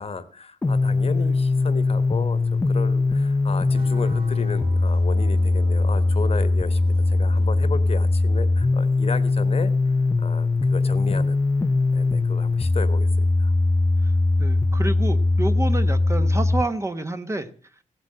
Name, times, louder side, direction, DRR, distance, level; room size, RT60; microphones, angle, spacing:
voice 1, 0.0-2.4 2.7-13.5, left 5 dB, 50° left, 12 dB, 1.4 m, -34 dB
sound 1, 0.6-16.6, left 3 dB, 20° left, 0.6 m, -21 dB
sound 2, 3.7-8.9, right 3 dB, 40° right, 1.8 m, -46 dB
voice 2, 14.4-17.5, right 2 dB, 20° right, 8 dB, 1.1 m, -29 dB
16.5 x 8.2 x 7.5 m, 0.43 s
wide cardioid pair, 130°, 14 cm